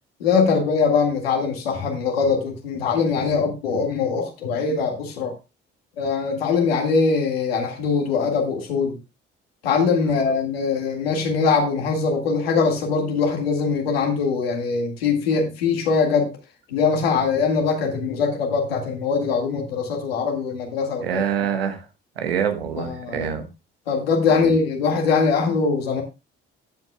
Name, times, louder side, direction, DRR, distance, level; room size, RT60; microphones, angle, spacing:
voice 1, 0.2-5.3 6.0-9.0 9.6-16.3 16.7-21.2 22.8-23.3 23.9-26.0, left 5 dB, 85° left, 2 dB, 1.9 m, -22 dB
voice 2, 21.0-21.8 22.2-23.4 24.4-24.5, right 8 dB, 90° right, 7 dB, 1.2 m, -25 dB
14.0 x 7.6 x 2.2 m, 0.27 s
hypercardioid pair, 50°, 29 cm